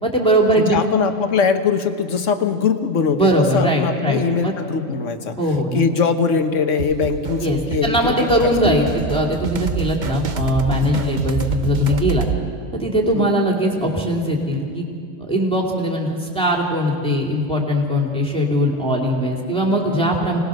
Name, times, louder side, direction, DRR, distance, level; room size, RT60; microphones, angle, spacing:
voice 1, 0.0-0.8 3.2-4.5 5.4-5.8 7.4-12.2 12.7-14.8 15.2-20.4, equal, 5° left, -3 dB, 2.8 m, -20 dB
voice 2, 0.5-3.2 3.5-5.4 5.7-8.7 13.1-13.3, left 5 dB, 75° left, 8 dB, 1.5 m, -21 dB
sound 1, 6.8-12.4, right 6 dB, 40° right, 0.9 m, -27 dB
26.0 x 19.0 x 6.5 m, 2.2 s
omnidirectional pair, 1.3 m